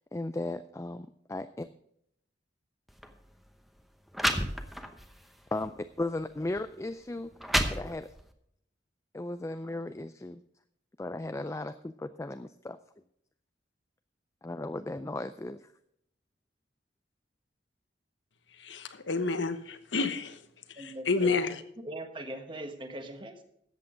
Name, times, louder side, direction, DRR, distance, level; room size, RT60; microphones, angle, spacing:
voice 1, 0.1-1.7 5.5-7.3 7.7-8.1 9.1-10.4 11.0-12.8 14.4-15.7, left 2 dB, 15° left, 10 dB, 0.3 m, -36 dB
sound 1, 2.9-3.1 3.8-3.9 4.1-5.1 5.6-5.8 6.6-6.7 7.2-8.3, equal, ahead, 0.8 m, -30 dB
voice 2, 18.6-20.4 20.7-21.6, left 4 dB, 75° left, 10 dB, 1.1 m, -30 dB
voice 3, 20.8-21.4 21.8-23.4, right 1 dB, 25° right, 6 dB, 1.4 m, -40 dB
14.0 x 8.4 x 4.9 m, 0.71 s
head